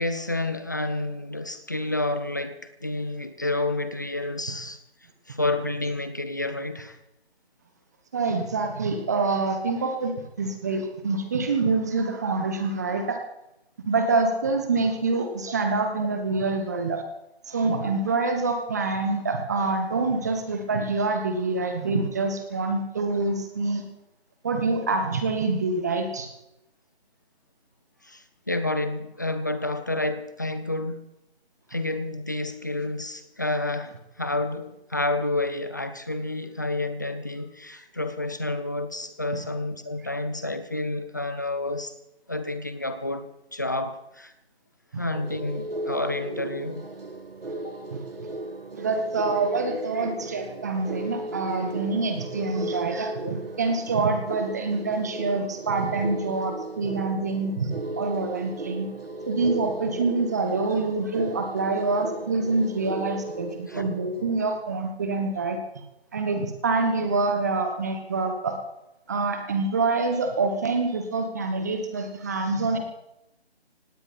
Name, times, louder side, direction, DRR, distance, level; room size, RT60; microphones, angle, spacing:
voice 1, 0.0-4.8 5.3-7.0 28.0-31.1 31.7-41.9 42.3-44.3 45.0-46.9 47.5-47.9 53.2-53.3 63.7-63.8, left 2 dB, 20° left, 10 dB, 0.7 m, -29 dB
voice 2, 8.1-13.2 13.8-17.0 17.5-23.8 24.4-26.3 39.3-39.4 44.9-45.0 47.9-48.0 48.7-58.9 59.2-65.6 66.1-68.6 69.1-72.8, right 3 dB, 15° right, 5 dB, 1.2 m, -26 dB
sound 1, 45.1-64.6, right 2 dB, 60° right, 2.3 m, -36 dB
18.0 x 18.0 x 4.3 m, 0.86 s
figure-of-eight pair, 160°, 33 cm